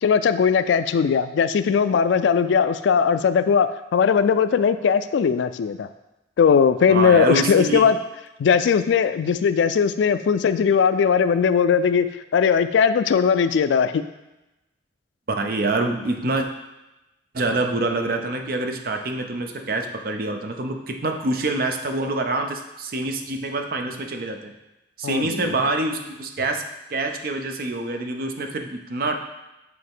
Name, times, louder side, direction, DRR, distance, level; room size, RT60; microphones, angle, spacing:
voice 1, 0.0-5.9 6.4-8.0 8.4-12.1 12.3-14.0 25.0-25.5, left 6 dB, 85° left, 12 dB, 0.3 m, -19 dB
voice 2, 6.9-7.9 15.3-16.5 17.3-24.5 25.0-26.6 26.9-29.2, right 2 dB, 50° right, 5 dB, 0.5 m, -26 dB
7.8 x 3.4 x 3.5 m, 0.98 s
head